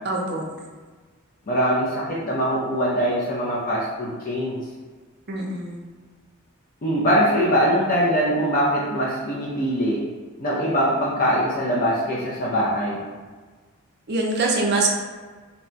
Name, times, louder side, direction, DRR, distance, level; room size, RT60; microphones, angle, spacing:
voice 1, 0.0-0.4 5.3-5.8 14.1-14.9, right 3 dB, 50° right, 0 dB, 0.5 m, -23 dB
voice 2, 1.5-4.6 6.8-10.0 10.4-13.0, equal, 40° left, -6 dB, 0.5 m, -22 dB
2.8 x 2.2 x 3.9 m, 1.4 s
head